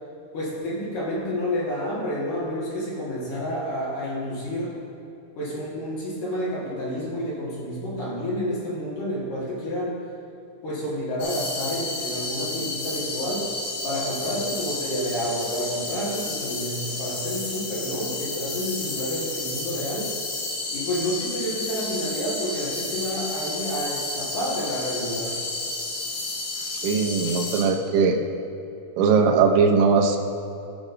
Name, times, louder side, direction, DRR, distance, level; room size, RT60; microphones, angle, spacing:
voice 1, 0.3-4.7 5.4-10.0 10.6-13.5 13.8-20.1 20.7-25.4, equal, 55° left, -7 dB, 2.8 m, -29 dB
sound 1, 11.2-27.6, left 2 dB, 70° left, 4.1 m, -31 dB
voice 2, 26.8-28.2 29.0-30.2, right 5 dB, 90° right, 2 dB, 3.2 m, -19 dB
18.5 x 6.2 x 2.6 m, 2.8 s
omnidirectional pair, 5.1 m